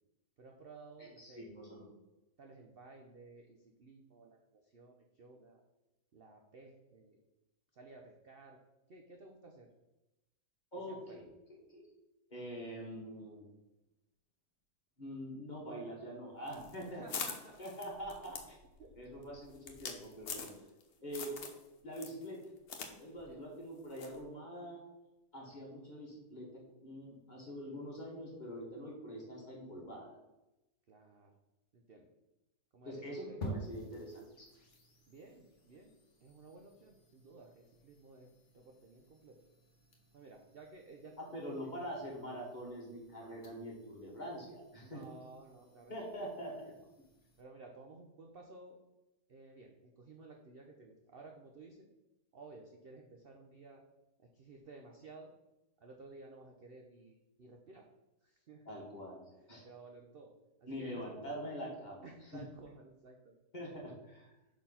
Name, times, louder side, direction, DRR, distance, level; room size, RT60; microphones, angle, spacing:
voice 1, 0.4-1.5 2.4-5.6 6.1-7.2 7.7-8.6 8.9-9.7 10.9-11.2 16.8-17.6 18.8-19.0 20.4-20.5 23.2-23.4 30.9-31.4 31.7-32.1 32.7-33.4 35.1-35.9 36.2-39.4 40.1-41.7 44.8-46.6 47.4-48.8 49.3-51.9 52.3-53.8 54.2-55.3 55.8-57.9 58.2-58.8 59.3-60.3 60.6-61.0 62.0-63.4, right 3 dB, 50° right, 2 dB, 0.7 m, -55 dB
voice 2, 1.0-1.9 10.7-11.2 11.7-11.8 12.3-13.4 15.0-17.0 17.6-18.4 19.0-20.5 21.0-21.3 21.8-22.4 23.0-24.8 25.3-30.2 32.9-34.5 41.2-45.0 45.9-46.5 58.7-59.2 59.5-59.6 60.7-62.1 62.3-62.4 63.5-64.3, equal, 30° left, -3 dB, 1.8 m, -44 dB
sound 1, 16.5-20.8 21.1-21.6 21.9-22.9 23.2-23.3 24.0-24.2, left 6 dB, 65° left, 1.4 m, -43 dB
sound 2, 33.4-47.4, right 1 dB, 45° left, 1.6 m, -52 dB
5.9 x 4.4 x 5.6 m, 0.97 s
omnidirectional pair, 1.8 m